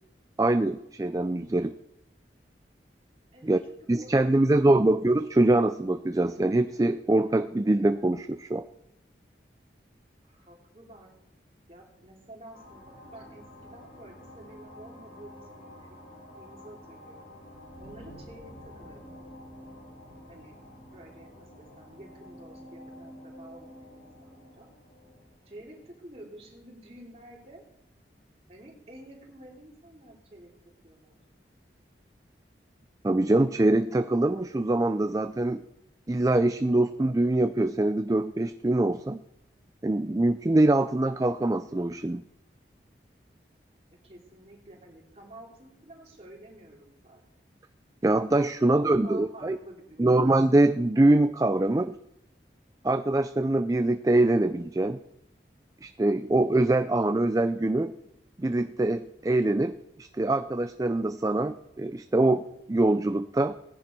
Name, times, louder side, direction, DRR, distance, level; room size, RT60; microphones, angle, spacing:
voice 1, 0.4-1.7 3.4-3.6 3.9-8.6 33.0-35.6 36.1-39.2 39.8-42.2 48.0-49.6 50.0-51.9 52.8-55.0 55.8-57.9 58.4-62.4 62.7-63.6, right 2 dB, 20° right, 10 dB, 0.4 m, -24 dB
voice 2, 3.3-4.1 10.2-11.1 11.7-16.0 16.4-17.2 17.8-19.2 20.3-20.6 20.9-24.7 25.5-27.6 28.5-30.5 30.8-31.2 43.9-47.2 48.6-50.2, right 1 dB, 35° right, -1 dB, 3.2 m, -50 dB
sound 1, 12.5-26.7, equal, 75° left, 6.5 m, -49 dB
17.0 x 10.5 x 4.5 m, 0.82 s
head